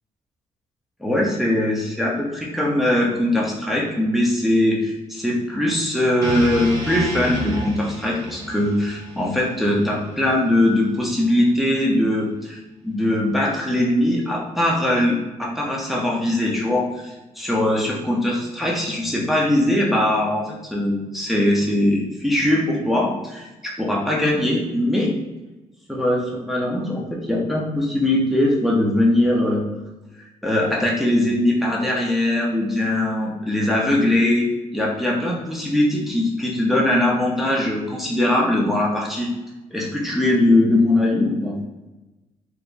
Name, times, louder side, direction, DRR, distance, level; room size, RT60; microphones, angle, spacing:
voice 1, 1.0-12.6 12.8-25.1 25.9-29.6 30.4-34.5 34.7-39.3 39.7-41.6, left 1 dB, ahead, -3 dB, 0.6 m, -21 dB
sound 1, 6.2-10.4, equal, 25° right, 1.3 m, -30 dB
3.3 x 2.9 x 2.5 m, 1.1 s
cardioid pair, 120°, 13 cm